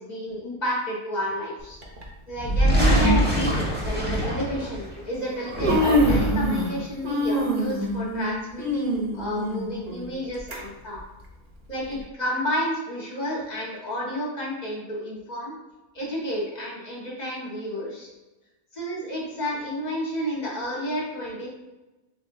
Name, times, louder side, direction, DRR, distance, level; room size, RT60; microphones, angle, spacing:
voice 1, 0.0-1.8 2.3-11.0 11.7-15.5 15.9-18.1 18.7-21.5, equal, 35° left, -5 dB, 1.4 m, -31 dB
Human voice, 1.8-2.0 3.1-3.2 3.8-4.0 5.0-5.1 5.4-6.8 7.0-10.6 11.0-11.1 11.9-12.0, equal, 45° right, 0.9 m, -25 dB
sound 1, 2.3-4.9 5.4-6.6, equal, 10° right, 0.9 m, -23 dB
7.4 x 2.6 x 2.6 m, 1.1 s
omnidirectional pair, 1.3 m